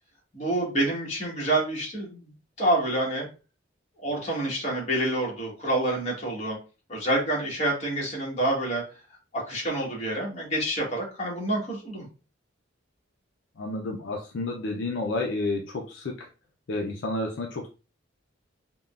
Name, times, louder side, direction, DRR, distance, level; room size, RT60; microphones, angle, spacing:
voice 1, 0.3-2.3 2.6-3.3 4.0-6.6 6.9-8.8 9.3-12.0, right 1 dB, 35° left, -3 dB, 1.2 m, -27 dB
voice 2, 13.6-16.3 16.7-17.7, left 2 dB, 65° left, 0 dB, 0.4 m, -30 dB
3.5 x 2.1 x 2.3 m, 0.33 s
head